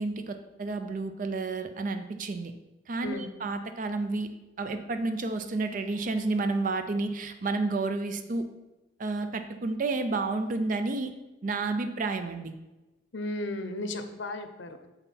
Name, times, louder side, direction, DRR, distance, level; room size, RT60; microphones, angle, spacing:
voice 1, 0.0-2.5 2.9-8.5 9.0-11.1 11.4-12.6, right 3 dB, 45° right, 8 dB, 0.5 m, -31 dB
voice 2, 13.1-14.9, left 2 dB, 80° left, 8 dB, 0.7 m, -35 dB
7.1 x 5.6 x 4.1 m, 1.1 s
head